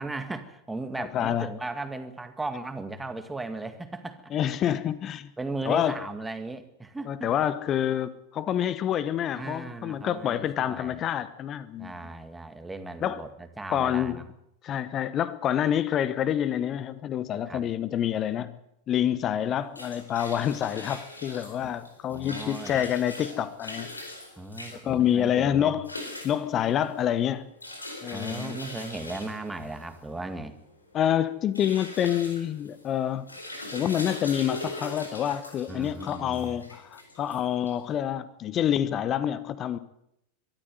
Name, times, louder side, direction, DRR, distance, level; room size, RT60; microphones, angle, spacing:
voice 1, 0.0-4.3 5.4-7.3 9.4-11.0 11.8-14.3 17.5-17.6 21.6-21.7 22.1-22.8 24.4-25.7 28.1-30.6 35.7-36.6, right 2 dB, 10° right, 2.0 m, -37 dB
voice 2, 1.0-1.5 4.3-5.3 5.6-6.0 7.1-12.1 13.0-13.2 13.7-14.2 14.6-18.6 18.9-23.9 24.7-26.0 26.2-27.5 28.0-28.6 30.9-33.3 33.7-39.8, left 10 dB, 30° left, 1.1 m, -27 dB
sound 1, 19.5-38.0, left 1 dB, 80° left, 4.5 m, -42 dB
23.0 x 13.5 x 9.5 m
figure-of-eight pair, 90°, 0 cm